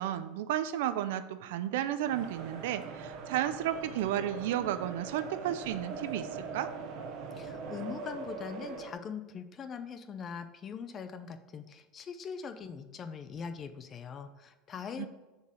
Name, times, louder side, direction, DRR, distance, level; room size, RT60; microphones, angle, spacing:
voice 1, 0.0-6.3 6.5-6.7 15.0-15.1, right 11 dB, 75° right, 11 dB, 0.5 m, -32 dB
sound 1, 2.0-8.9, right 5 dB, 50° right, 1.1 m, -42 dB
voice 2, 7.3-15.1, left 6 dB, 30° left, 9 dB, 0.6 m, -42 dB
6.8 x 4.5 x 6.4 m, 1.1 s
supercardioid pair, 135°, 0 cm